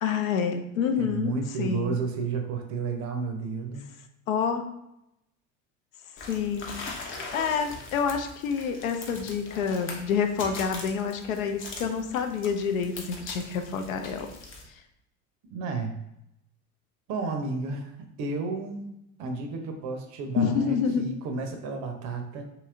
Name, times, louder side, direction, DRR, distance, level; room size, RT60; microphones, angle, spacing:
voice 1, 0.0-1.3 1.6-2.0 4.3-4.7 6.3-6.7 7.3-14.3 20.4-21.0, left 6 dB, 70° left, 6 dB, 0.5 m, -28 dB
voice 2, 1.0-3.9 15.5-15.9 17.1-17.9 18.2-18.9 19.2-22.4, right 4 dB, 40° right, 4 dB, 0.6 m, -32 dB
sound 1, 6.2-14.6, left 3 dB, 30° left, 0.6 m, -41 dB
2.9 x 2.8 x 2.4 m, 0.83 s
figure-of-eight pair, 65°, 43 cm